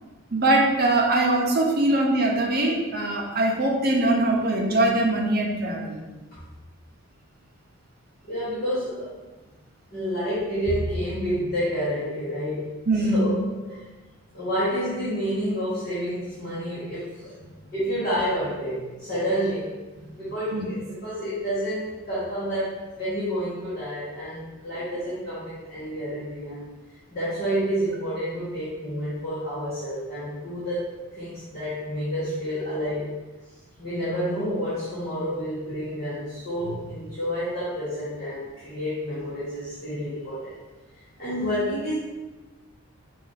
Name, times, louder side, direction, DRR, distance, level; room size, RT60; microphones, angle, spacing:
voice 1, 0.3-6.0 12.9-13.3 20.5-20.6, right 2 dB, 45° right, -1 dB, 0.7 m, -22 dB
voice 2, 8.3-9.1 9.9-12.7 12.9-13.3 13.7-13.8 14.3-17.3 17.7-19.7 20.1-26.7 27.1-30.8 31.2-33.1 33.8-40.5 40.9-42.0, equal, 40° left, -12 dB, 1.3 m, -29 dB
5.4 x 2.5 x 3.9 m, 1.2 s
head